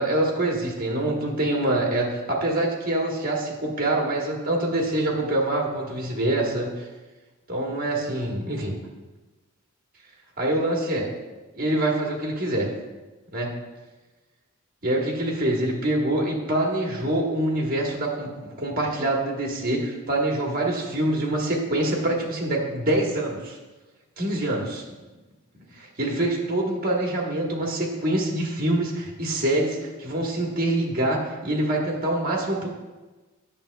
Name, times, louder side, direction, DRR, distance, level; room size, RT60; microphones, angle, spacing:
voice 1, 0.0-6.7 7.5-8.7 10.4-11.1 11.5-12.7 13.3-13.5 14.8-23.6 24.2-24.8 25.5-32.7, right 1 dB, 40° right, -1 dB, 1.2 m, -25 dB
8.7 x 6.5 x 2.2 m, 1.2 s
head